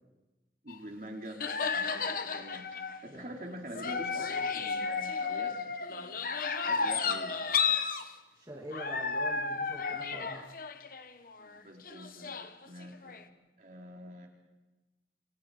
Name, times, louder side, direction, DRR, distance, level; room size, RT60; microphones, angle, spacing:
voice 1, 0.6-5.6 5.9-7.4 11.4-13.3 13.6-14.3, right 1 dB, 45° right, 1 dB, 3.6 m, -46 dB
sound 1, 0.7-0.8 1.4-3.1 3.7-8.1 8.7-11.6 11.9-13.2, left 5 dB, 50° left, 1.2 m, -33 dB
voice 2, 8.3-10.4, right 1 dB, 20° right, -2 dB, 2.5 m, -45 dB
28.5 x 23.0 x 5.0 m, 1.1 s
head